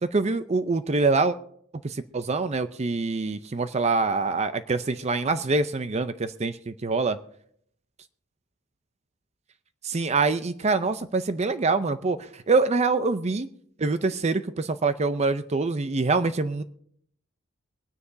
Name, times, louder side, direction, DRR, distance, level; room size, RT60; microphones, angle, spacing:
voice 1, 0.0-1.4 1.8-7.2 9.8-13.5 13.8-16.6, right 3 dB, 30° right, 12 dB, 0.5 m, -25 dB
23.5 x 9.8 x 2.7 m, 0.67 s
head